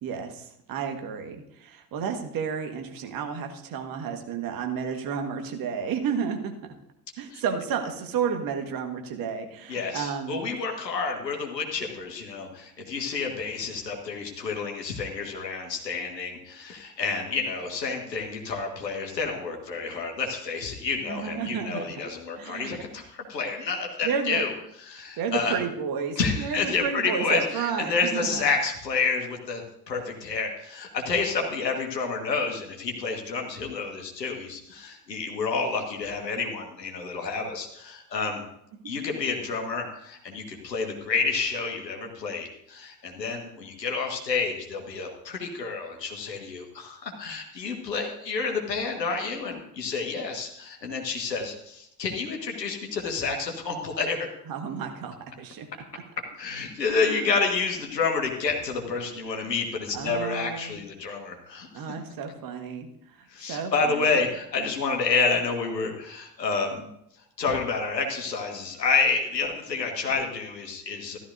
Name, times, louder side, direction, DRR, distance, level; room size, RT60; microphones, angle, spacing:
voice 1, 0.0-6.5 7.2-10.4 21.1-22.0 22.4-22.8 24.0-24.4 25.2-28.4 54.5-55.7 55.9-56.0 56.9-57.3 59.4-59.5 59.9-60.8 61.7-64.2, right 6 dB, 45° right, 5 dB, 1.6 m, -32 dB
voice 2, 9.7-24.5 24.8-25.6 26.2-38.5 38.9-54.3 56.4-61.8 63.3-66.9 67.4-71.2, left 4 dB, 80° left, 2 dB, 1.7 m, -29 dB
14.5 x 12.5 x 2.6 m, 0.76 s
figure-of-eight pair, 65°, 49 cm